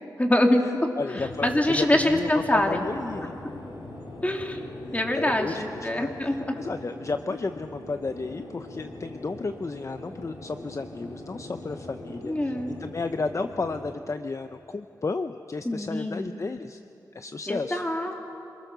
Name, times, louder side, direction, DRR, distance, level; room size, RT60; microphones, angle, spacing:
voice 1, 0.2-0.9 1.4-2.8 4.2-6.6 12.2-12.8 15.6-16.3 17.5-18.2, left 1 dB, 20° left, 2 dB, 2.6 m, -25 dB
voice 2, 1.0-3.3 4.9-12.5 12.8-16.8 17.1-17.8, left 3 dB, 40° left, 9 dB, 0.6 m, -33 dB
sound 1, 1.2-14.0, left 2 dB, 85° left, 3.7 m, -41 dB
27.0 x 21.0 x 6.9 m, 2.9 s
wide cardioid pair, 70°, 8 cm